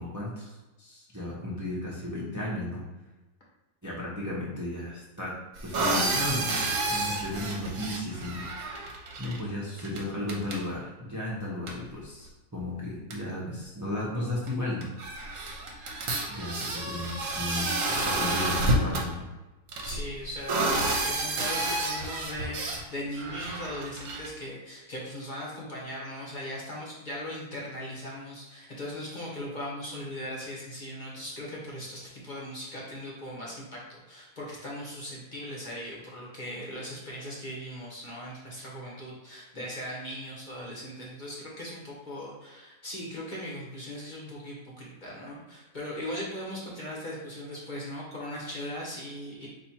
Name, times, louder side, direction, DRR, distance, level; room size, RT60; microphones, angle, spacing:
voice 1, 0.0-2.8 3.8-5.3 5.6-6.6 6.9-8.4 9.2-14.9 16.3-19.3, left 1 dB, 20° right, -6 dB, 0.6 m, -34 dB
sound 1, 5.6-9.4 9.8-10.0 10.3-10.6 11.7-11.8 12.7-12.8 13.1-13.2 14.5-14.6 14.8-19.1 19.7-22.8 23.2-24.3, right 2 dB, 65° right, 1.1 m, -30 dB
voice 2, 19.8-49.5, equal, 35° left, -5 dB, 1.0 m, -39 dB
4.2 x 2.7 x 4.3 m, 1.1 s
omnidirectional pair, 1.6 m